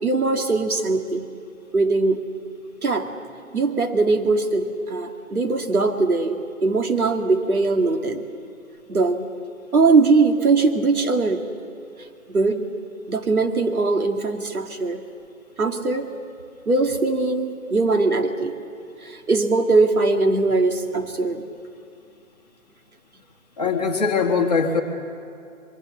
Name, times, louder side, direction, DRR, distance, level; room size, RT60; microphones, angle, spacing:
voice 1, 0.0-1.3 1.7-2.3 2.8-3.1 3.5-8.2 8.9-9.3 9.7-11.4 12.3-12.7 13.1-15.0 15.6-16.1 16.7-18.6 19.0-21.4, right 3 dB, 90° right, 5 dB, 2.3 m, -21 dB
voice 2, 23.6-24.8, left 5 dB, 30° left, 1 dB, 1.6 m, -21 dB
25.0 x 22.5 x 6.9 m, 2.5 s
hypercardioid pair, 175°, 42 cm